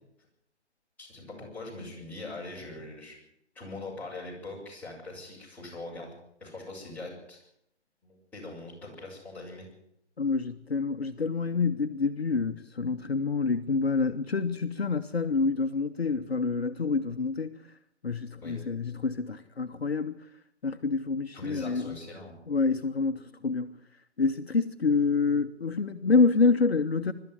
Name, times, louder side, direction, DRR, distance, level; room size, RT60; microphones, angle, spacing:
voice 1, 1.0-3.2 3.5-6.1 6.4-7.4 8.0-9.7 18.4-18.6 21.3-22.4, left 2 dB, 5° left, 7.3 m, -42 dB
voice 2, 10.2-17.5 18.0-20.1 20.6-22.0 22.5-23.8 24.2-27.1, left 4 dB, 60° left, 1.2 m, -27 dB
22.0 x 13.0 x 9.7 m
figure-of-eight pair, 140°, 34 cm